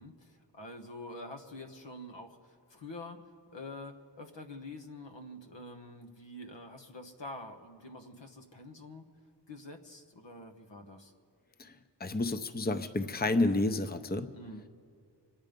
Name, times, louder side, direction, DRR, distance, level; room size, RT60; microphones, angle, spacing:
voice 1, 0.0-9.1 9.5-11.1 14.3-14.7, left 2 dB, 80° left, 4 dB, 1.3 m, -46 dB
voice 2, 11.6-14.3, left 2 dB, 20° left, 10 dB, 0.7 m, -30 dB
24.5 x 9.6 x 5.3 m, 2.3 s
cardioid pair, 50°, 43 cm